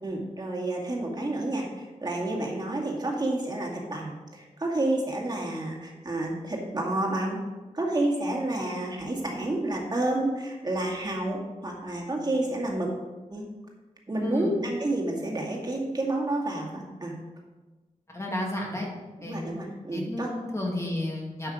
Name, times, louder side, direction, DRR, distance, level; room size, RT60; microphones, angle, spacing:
voice 1, 0.0-7.4 7.7-12.9 13.3-13.4 14.1-17.1 19.2-20.3, right 1 dB, 30° right, -2 dB, 2.3 m, -30 dB
voice 2, 14.2-14.5 18.1-18.9 19.2-19.4 19.9-21.5, left 1 dB, 20° left, -1 dB, 2.3 m, -31 dB
10.5 x 6.1 x 5.1 m, 1.2 s
wide cardioid pair, 100°, 13 cm